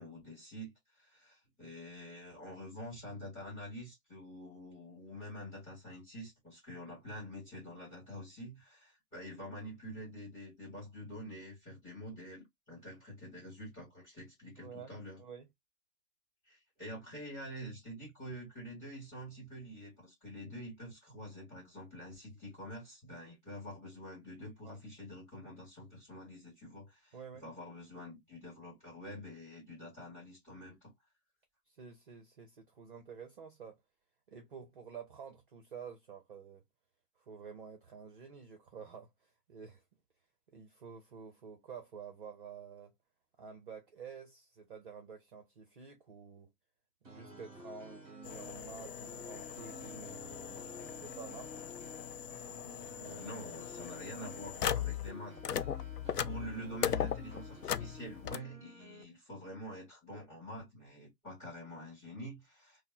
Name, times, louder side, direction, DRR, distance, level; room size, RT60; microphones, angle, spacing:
voice 1, 0.0-15.2 16.4-30.9 53.0-55.7 56.2-62.8, equal, 15° left, 2.1 m, -47 dB
voice 2, 14.6-15.5 24.6-24.8 27.1-27.4 31.7-33.8 34.3-36.6 37.2-39.8 40.5-42.9 43.4-46.5 47.0-51.5, right 6 dB, 35° right, 0.6 m, -50 dB
sound 1, 47.0-59.0, equal, 10° right, 1.5 m, -52 dB
sound 2, 48.2-55.1 55.4-58.4, left 9 dB, 70° left, 0.6 m, -39 dB
5.2 x 2.1 x 2.6 m
figure-of-eight pair, 135°, 48 cm